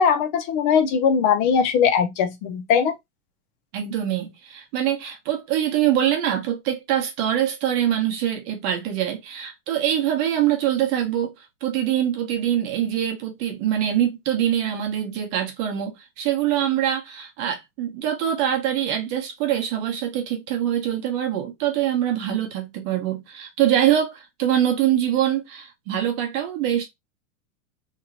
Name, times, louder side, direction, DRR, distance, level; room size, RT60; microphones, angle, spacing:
voice 1, 0.0-2.9, left 6 dB, 40° left, 0.5 m, -20 dB
voice 2, 3.7-26.8, right 11 dB, 40° right, 1.0 m, -24 dB
3.0 x 2.8 x 2.6 m
supercardioid pair, 150°, 39 cm